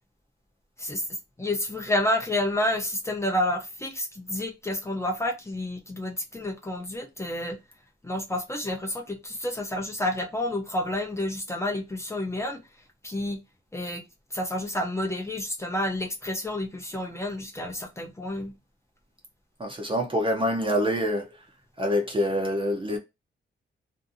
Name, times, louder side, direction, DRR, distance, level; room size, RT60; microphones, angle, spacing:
voice 1, 1.4-7.6 8.0-12.6 13.0-13.4 13.7-14.0 14.3-18.5, left 1 dB, 15° left, 0.6 m, -29 dB
voice 2, 19.6-21.4 21.8-23.0, equal, 25° right, 0.6 m, -26 dB
2.6 x 2.6 x 2.6 m
wide cardioid pair, 115°, 20 cm